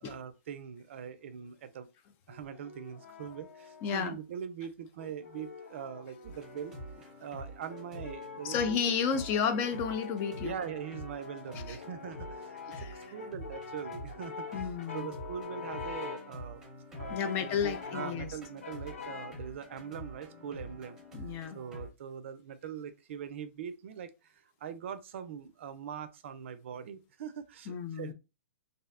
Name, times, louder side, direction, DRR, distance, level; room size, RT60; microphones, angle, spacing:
voice 1, 0.0-1.9 2.3-6.7 7.2-8.9 10.4-14.5 14.9-16.6 17.0-21.0 21.5-24.1 24.6-28.1, right 8 dB, 60° right, 0.4 m, -42 dB
Brass instrument, 2.3-4.2 5.0-7.0 7.7-16.4 16.9-18.3 18.6-19.5, left 6 dB, 85° left, 0.6 m, -45 dB
voice 2, 3.8-4.1 8.4-10.6 11.7-11.8 12.7-13.0 14.5-15.1 17.1-18.4 21.1-21.6 27.7-28.1, left 7 dB, 30° left, 0.3 m, -32 dB
sound 1, 6.2-21.9, right 1 dB, 5° right, 0.8 m, -47 dB
2.6 x 2.1 x 2.4 m
hypercardioid pair, 140°, 8 cm